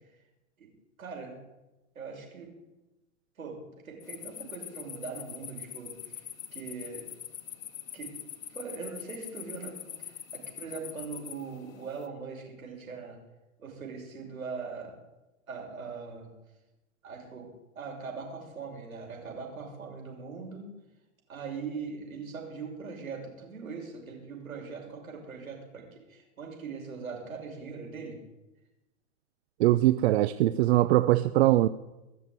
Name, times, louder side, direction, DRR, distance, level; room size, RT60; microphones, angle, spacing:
voice 1, 1.0-1.4 1.9-2.5 3.4-6.2 6.5-7.0 7.9-8.1 8.5-13.2 13.6-14.9 15.5-16.3 17.0-17.5 17.7-20.7 21.3-28.2, right 5 dB, 85° right, 6.6 m, -41 dB
sound 1, 4.0-12.1, left 10 dB, 75° left, 1.3 m, -43 dB
voice 2, 29.6-31.7, right 15 dB, 50° right, 0.7 m, -22 dB
20.0 x 7.2 x 9.6 m
hypercardioid pair, 120°, 41 cm